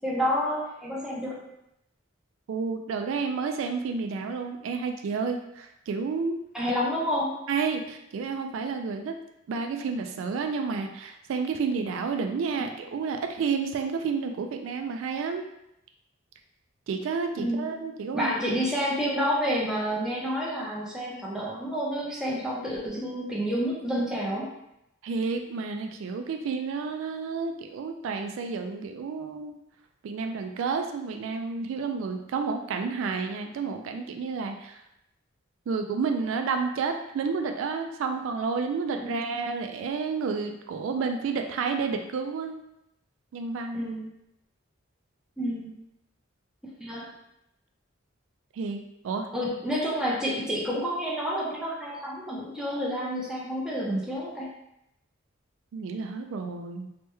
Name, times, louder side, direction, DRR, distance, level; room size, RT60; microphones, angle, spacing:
voice 1, 0.0-1.4 6.5-7.3 12.6-12.7 17.4-17.6 18.1-24.5 39.0-39.1 43.7-44.0 45.4-45.7 46.8-47.1 49.3-54.5, equal, 5° right, -5 dB, 0.6 m, -29 dB
voice 2, 2.5-6.4 7.5-9.2 9.5-15.5 16.9-18.3 25.0-29.5 30.0-34.8 35.7-42.6 43.3-43.9 48.5-49.3 55.7-56.9, right 5 dB, 75° right, 6 dB, 0.3 m, -30 dB
3.2 x 2.2 x 3.0 m, 0.83 s
head